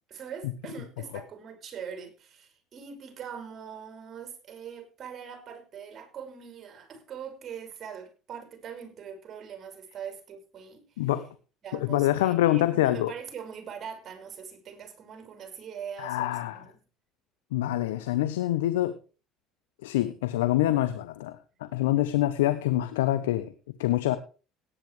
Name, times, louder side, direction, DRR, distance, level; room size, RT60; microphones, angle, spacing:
voice 1, 0.1-11.1 11.6-16.8, right 7 dB, 45° right, 7 dB, 6.1 m, -42 dB
voice 2, 11.8-13.1 16.0-16.6 17.5-19.0 19.8-23.5 23.8-24.2, left 14 dB, 90° left, 13 dB, 0.9 m, -25 dB
17.5 x 10.0 x 3.4 m, 0.34 s
supercardioid pair, 80°, 0 cm